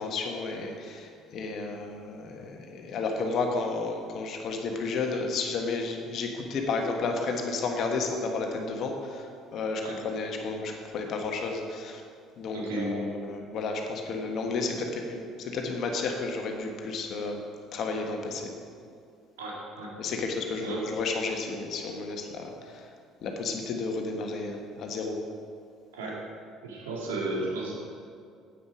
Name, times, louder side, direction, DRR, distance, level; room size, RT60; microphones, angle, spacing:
voice 1, 0.0-12.0 12.4-17.4 17.7-18.5 20.0-22.9 23.2-25.2, left 3 dB, 55° left, 3 dB, 1.5 m, -32 dB
voice 2, 12.5-13.2 19.4-19.9 20.6-20.9 25.9-26.2 26.6-27.7, right 2 dB, 80° right, -3 dB, 2.2 m, -33 dB
9.5 x 8.4 x 5.1 m, 2.3 s
hypercardioid pair, 55°, 0 cm